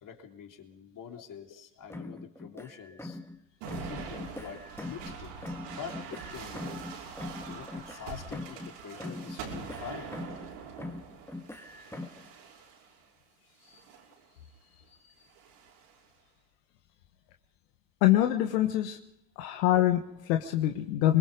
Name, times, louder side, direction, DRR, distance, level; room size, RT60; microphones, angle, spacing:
voice 1, 0.0-3.2 3.8-6.9 7.5-10.2, left 8 dB, 40° left, 4 dB, 3.5 m, -45 dB
sound 1, 1.9-3.4 3.7-5.2 5.4-8.7 9.0-10.5 10.8-12.3, left 2 dB, 5° left, 1.7 m, -42 dB
sound 2, 3.6-13.0 13.7-14.2 15.3-16.0, right 6 dB, 75° right, 5.7 m, -44 dB
voice 2, 18.0-19.0 19.4-21.2, left 13 dB, 80° left, 5 dB, 1.5 m, -25 dB
24.0 x 21.5 x 5.3 m, 0.78 s
supercardioid pair, 90°, 47 cm